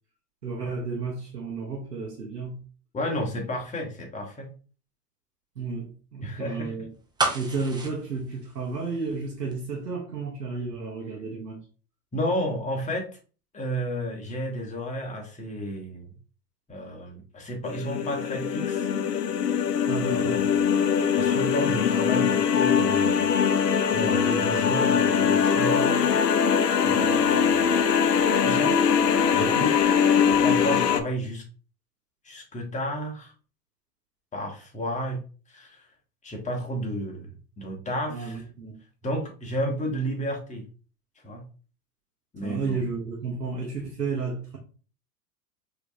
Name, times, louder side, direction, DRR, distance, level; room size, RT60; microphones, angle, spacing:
voice 1, 0.4-2.6 5.6-6.9 7.3-11.6 19.9-20.5 38.1-38.8 42.4-44.6, right 4 dB, 90° right, 1.1 m, -32 dB
voice 2, 2.9-4.5 6.2-6.7 12.1-13.1 13.5-16.1 16.7-18.9 20.1-20.6 21.2-23.4 23.9-26.1 26.8-27.7 28.4-28.7 29.3-29.8 30.1-31.4 32.2-33.3 34.3-35.2 35.5-35.8 36.2-37.3 37.6-38.4 39.0-40.6 41.2-41.4 42.3-42.8, equal, 15° left, 1.4 m, -32 dB
sound 1, 7.2-9.2 9.5-9.6, right 3 dB, 10° right, 0.8 m, -30 dB
sound 2, 17.6-31.0, left 7 dB, 85° left, 0.6 m, -22 dB
4.9 x 3.2 x 2.7 m
hypercardioid pair, 95°, 47 cm